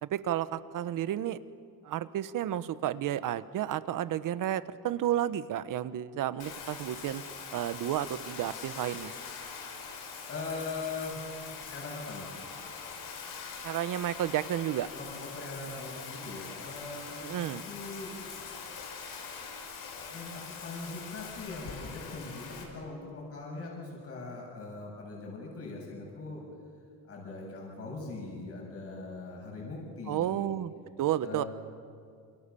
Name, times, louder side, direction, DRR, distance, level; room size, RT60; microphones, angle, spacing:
voice 1, 0.0-1.4 1.8-7.2 7.5-9.1 13.6-14.9 17.2-17.6 30.1-30.7 31.0-31.4, right 11 dB, 65° right, 14 dB, 1.1 m, -31 dB
Bathtub (filling or washing), 6.4-22.6, left 5 dB, 85° left, 5.5 m, -43 dB
voice 2, 10.3-11.3 11.7-12.3 14.9-18.1 20.1-26.4 27.1-30.5 31.2-31.5, left 3 dB, 40° left, -2 dB, 7.3 m, -41 dB
28.0 x 28.0 x 7.0 m, 2.2 s
cardioid pair, 165°, 35 cm